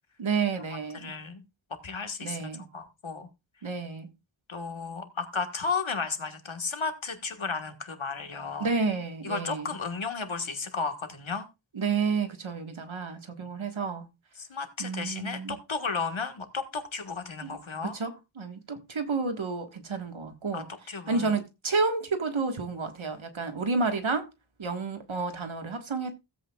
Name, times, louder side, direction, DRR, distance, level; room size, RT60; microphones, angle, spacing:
voice 1, 0.2-1.2 2.2-2.7 3.6-4.1 8.6-9.7 11.7-14.1 14.8-15.6 17.4-20.7 21.1-24.3 24.6-26.1, right 4 dB, 80° right, 1.6 m, -30 dB
voice 2, 0.9-1.4 1.8-3.3 4.5-8.7 9.2-11.5 13.4-13.5 14.4-17.9 20.5-21.3, left 4 dB, 85° left, 1.6 m, -34 dB
16.0 x 8.1 x 2.3 m
wide cardioid pair, 60°, 46 cm